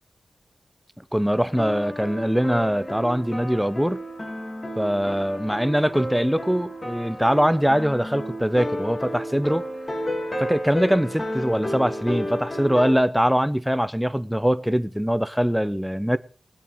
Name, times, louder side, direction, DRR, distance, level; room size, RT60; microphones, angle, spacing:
voice 1, 1.1-4.0 4.8-9.6 10.4-16.2, equal, ahead, 0.6 m, -22 dB
sound 1, 1.5-13.0, equal, 30° left, 2.4 m, -32 dB
20.5 x 7.1 x 5.0 m
wide cardioid pair, 75°, 0 cm